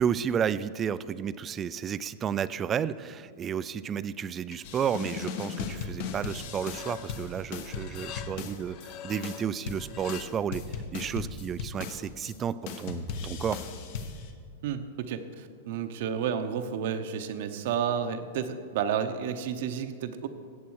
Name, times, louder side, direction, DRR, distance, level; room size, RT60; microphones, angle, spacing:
voice 1, 0.0-13.6, right 8 dB, 25° right, 16 dB, 0.3 m, -32 dB
sound 1, 4.5-5.1 5.4-5.9 6.3-10.3, left 9 dB, 40° left, 0.6 m, -45 dB
sound 2, 4.6-8.9 9.2-12.4 12.7-14.3, left 5 dB, 60° left, 1.2 m, -37 dB
voice 2, 14.6-20.3, right 8 dB, 60° right, 8 dB, 0.8 m, -31 dB
14.5 x 8.5 x 4.7 m, 2.2 s
hypercardioid pair, 135°, 0 cm